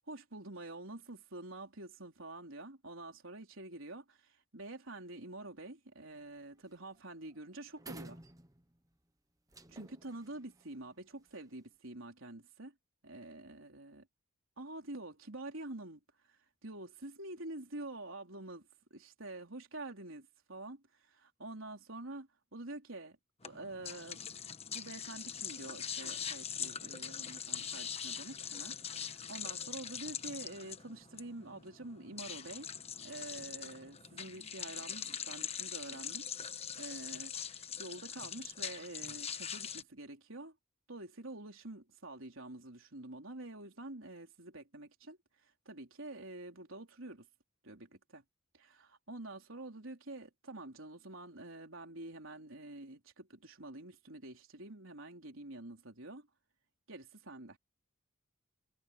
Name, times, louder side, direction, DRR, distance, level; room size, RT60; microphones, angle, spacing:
voice 1, 0.1-8.2 9.7-12.7 13.0-14.1 14.6-16.0 16.3-23.2 23.4-24.3 24.7-32.7 33.0-36.3 36.8-40.6 40.9-47.3 47.6-48.2 48.5-56.3 56.9-57.6, right 2 dB, 75° right, 4.0 m, -47 dB
sound 1, 6.1-6.4 6.7-7.0 7.2-7.3 7.8-8.9 9.5-11.6, right 2 dB, 15° right, 1.3 m, -53 dB
sound 2, 23.4-39.8, left 8 dB, 30° left, 1.2 m, -42 dB
head